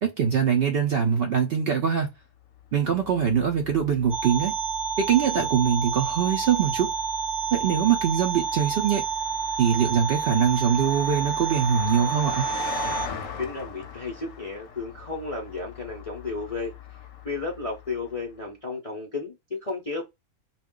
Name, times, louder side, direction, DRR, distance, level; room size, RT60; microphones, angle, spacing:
voice 1, 0.0-2.1 2.7-4.5 5.0-6.9 7.5-9.0 9.6-12.5, right 7 dB, 80° right, 0.5 m, -23 dB
Car passing by, 2.5-18.3, left 8 dB, 70° left, 0.9 m, -41 dB
sound 1, 4.1-13.1, right 6 dB, ahead, 1.0 m, -29 dB
voice 2, 13.4-16.7 17.2-20.0, left 3 dB, 50° left, 0.4 m, -33 dB
2.3 x 2.2 x 3.5 m
omnidirectional pair, 1.6 m